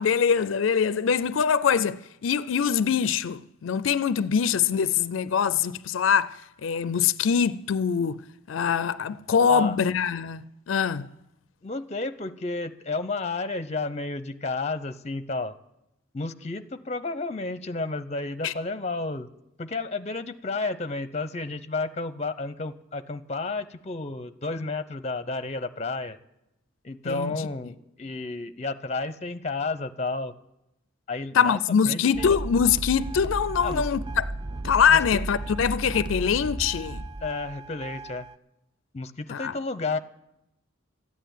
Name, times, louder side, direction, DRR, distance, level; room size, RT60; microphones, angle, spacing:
voice 1, 0.0-8.2 8.5-10.4 10.7-11.1 18.4-18.5 27.1-27.5 31.3-34.3 34.6-37.0 39.3-39.5, left 7 dB, 80° left, 0.4 m, -23 dB
voice 2, 11.6-15.6 16.1-19.3 19.6-26.2 26.8-30.3 31.1-31.6 31.9-32.3 33.6-33.9 34.9-35.2 37.2-38.3 38.9-40.0, left 3 dB, 35° left, 0.7 m, -31 dB
sound 1, 32.1-38.3, right 2 dB, 25° right, 0.4 m, -34 dB
13.5 x 9.3 x 9.2 m
head